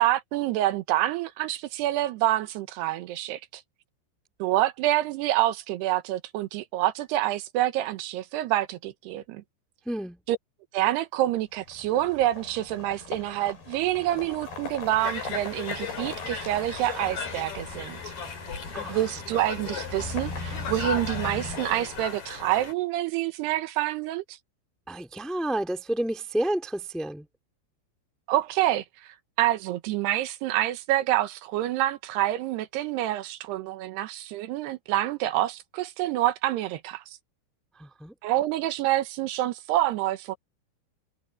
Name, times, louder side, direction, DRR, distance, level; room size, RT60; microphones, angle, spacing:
voice 1, 0.0-3.6 4.4-9.4 10.3-10.4 10.7-18.1 18.9-24.4 28.3-28.8 29.4-37.0 38.2-40.4, right 14 dB, 75° right, 3.1 m, -27 dB
voice 2, 9.8-10.2 18.7-19.1 24.9-27.3 37.7-38.1, right 1 dB, ahead, 0.7 m, -30 dB
sound 1, 11.6-22.4, left 3 dB, 65° left, 8.5 m, -39 dB
Conversation, 15.0-22.7, left 5 dB, 45° left, 5.0 m, -37 dB
omnidirectional pair, 5.0 m